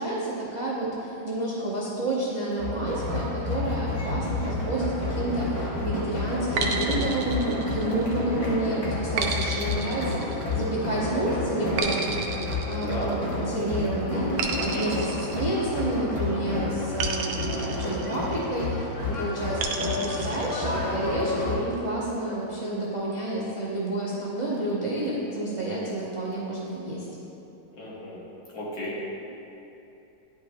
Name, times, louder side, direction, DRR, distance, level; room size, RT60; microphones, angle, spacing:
voice 1, 0.0-12.1 12.7-27.1, right 2 dB, 35° right, -8 dB, 0.5 m, -30 dB
sound 1, 2.6-21.6, left 2 dB, 25° left, 0.8 m, -30 dB
sound 2, 6.6-8.2 9.2-10.8 11.8-13.5 14.4-16.1 17.0-18.5 19.6-20.7, right 5 dB, 75° right, 1.2 m, -32 dB
voice 2, 12.9-13.2 14.6-14.9 27.8-28.2 28.5-29.1, left 1 dB, 80° left, -6 dB, 2.1 m, -34 dB
10.5 x 5.2 x 2.2 m, 2.9 s
omnidirectional pair, 2.0 m